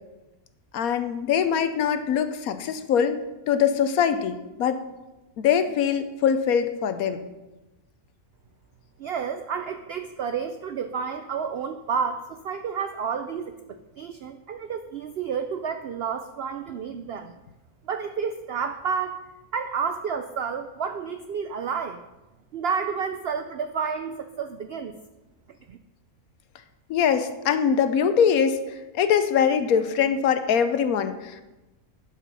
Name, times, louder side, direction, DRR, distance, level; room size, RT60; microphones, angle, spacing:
voice 1, 0.7-3.2 3.5-4.8 5.4-7.2 26.9-28.6 28.9-31.4, left 7 dB, 75° left, 10 dB, 1.1 m, -23 dB
voice 2, 9.0-17.3 17.8-19.2 19.5-22.0 22.5-25.0 25.7-25.8, right 6 dB, 75° right, 9 dB, 0.5 m, -30 dB
11.0 x 5.1 x 5.5 m, 1.1 s
omnidirectional pair, 1.6 m